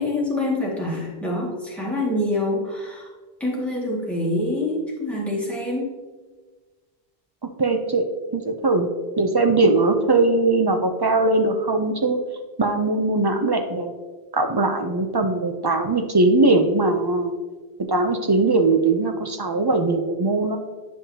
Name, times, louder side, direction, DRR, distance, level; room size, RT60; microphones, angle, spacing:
voice 1, 0.0-3.1 3.4-5.9, left 1 dB, ahead, -5 dB, 1.8 m, -26 dB
voice 2, 7.4-8.1 8.3-8.9 9.2-12.2 12.6-13.9 14.3-17.3 17.8-20.6, right 2 dB, 40° right, 5 dB, 0.3 m, -20 dB
9.5 x 5.6 x 2.8 m, 1.3 s
omnidirectional pair, 1.1 m